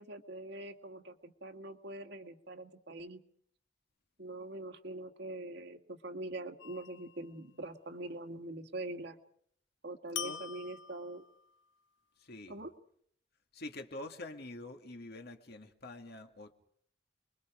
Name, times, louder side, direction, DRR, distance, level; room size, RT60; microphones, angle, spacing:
voice 1, 0.0-3.2 4.2-9.2 9.8-11.2 12.5-12.7, right 2 dB, 60° right, 5 dB, 1.8 m, -43 dB
sound 1, 6.6-7.3 10.2-11.6, left 8 dB, 80° left, 1.0 m, -44 dB
voice 2, 12.2-12.6 13.5-16.5, left 2 dB, 55° left, 5 dB, 2.1 m, -46 dB
30.0 x 22.5 x 5.1 m, 0.66 s
head